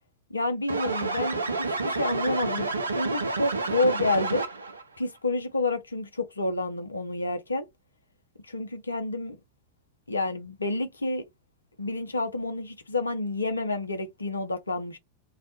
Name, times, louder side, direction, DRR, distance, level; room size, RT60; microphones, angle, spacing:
voice 1, 0.3-4.5 5.0-7.7 8.5-9.4 10.1-11.2 11.8-15.0, left 2 dB, 80° left, 0.5 m, -29 dB
sound 1, 0.7-4.8, right 3 dB, 75° right, 0.4 m, -29 dB
2.4 x 2.1 x 2.7 m
figure-of-eight pair, 90°, 0 cm